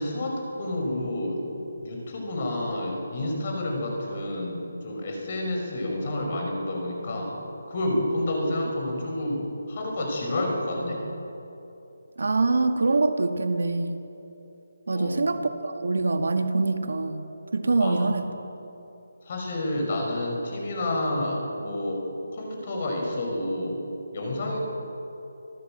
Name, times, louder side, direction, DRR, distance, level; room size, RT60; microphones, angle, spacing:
voice 1, 0.0-1.5 1.7-7.4 7.7-11.0 14.9-15.2 17.8-18.1 19.3-22.1 22.3-23.8 24.1-24.6, left 1 dB, 35° left, 1 dB, 5.4 m, -29 dB
voice 2, 12.2-14.0 14.9-17.2 17.5-18.3, right 3 dB, 75° right, 7 dB, 1.9 m, -24 dB
26.5 x 15.0 x 7.6 m, 2.9 s
hypercardioid pair, 175°, 0 cm